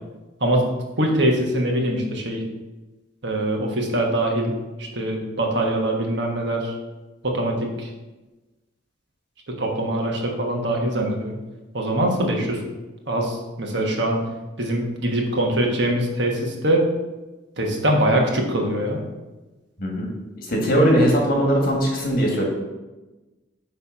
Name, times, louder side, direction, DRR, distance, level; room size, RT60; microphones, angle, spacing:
voice 1, 1.0-2.4 3.2-4.5 4.9-6.7 7.2-7.9 9.6-11.4 11.7-12.6 13.1-14.2 14.6-16.9 17.6-19.0, right 1 dB, 60° right, 1 dB, 1.3 m, -23 dB
voice 2, 20.5-22.4, equal, 45° left, -1 dB, 1.7 m, -19 dB
8.5 x 3.4 x 5.6 m, 1.1 s
head